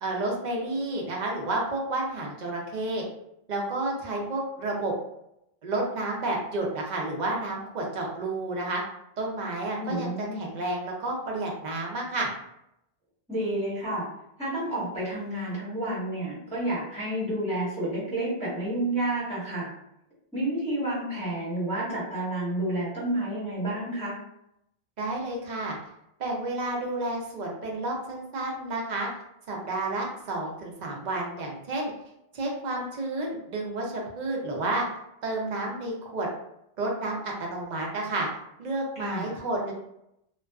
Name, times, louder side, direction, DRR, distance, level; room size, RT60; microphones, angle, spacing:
voice 1, 0.0-3.0 3.5-4.9 5.6-8.8 9.2-12.3 25.0-25.8 26.2-29.1 29.5-31.9 32.3-34.8 35.2-36.3 36.8-38.3 38.6-39.7, right 2 dB, 55° right, -1 dB, 0.6 m, -30 dB
voice 2, 9.8-10.4 13.3-14.1 14.4-19.7 20.3-24.2 38.9-39.3, right 1 dB, 5° left, -10 dB, 1.3 m, -30 dB
2.4 x 2.2 x 2.2 m, 0.80 s
omnidirectional pair, 1.0 m